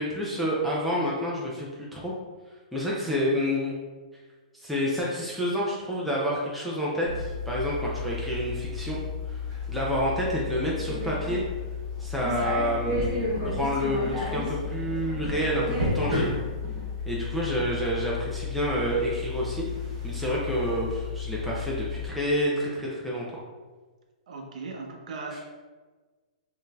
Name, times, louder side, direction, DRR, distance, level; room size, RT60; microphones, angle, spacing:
voice 1, 0.0-2.1 2.7-3.7 4.5-9.0 9.3-11.4 12.0-16.4 17.1-19.6 20.0-23.4 25.3-25.4, equal, ahead, -6 dB, 0.3 m, -29 dB
sound 1, 7.0-22.1, left 3 dB, 25° right, 1.5 m, -32 dB
voice 2, 24.3-25.4, right 3 dB, 60° right, 2 dB, 0.6 m, -38 dB
3.7 x 2.6 x 2.2 m, 1.3 s
hypercardioid pair, 165°, 4 cm